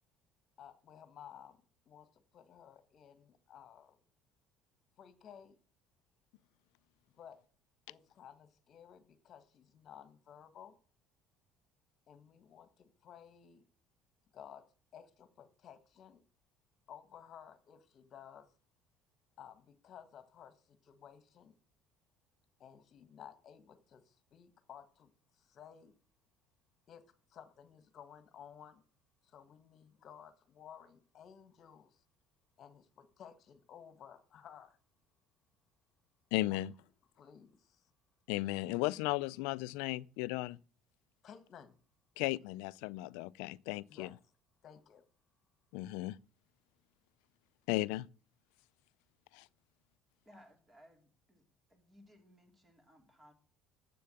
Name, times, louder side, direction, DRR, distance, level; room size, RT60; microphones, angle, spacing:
voice 1, 0.6-1.6 1.8-4.0 5.0-5.6 7.1-7.4 7.9-10.8 12.1-13.6 14.3-14.6 14.9-16.2 16.9-18.5 19.4-21.5 22.6-26.0 26.9-27.0 27.3-28.8 29.2-32.0 32.6-34.8 36.5-36.6 37.1-37.9 41.2-41.8 43.9-44.1 44.6-45.0, left 8 dB, 45° left, 1.4 m, -55 dB
voice 2, 36.3-36.7 38.3-40.6 42.2-44.1 45.7-46.2 47.7-48.1 49.3-49.5, left 19 dB, 90° left, 0.4 m, -35 dB
voice 3, 50.2-51.4 51.7-53.3, equal, 15° right, 3.0 m, -62 dB
7.7 x 6.9 x 7.8 m
cardioid pair, 125°, 0 cm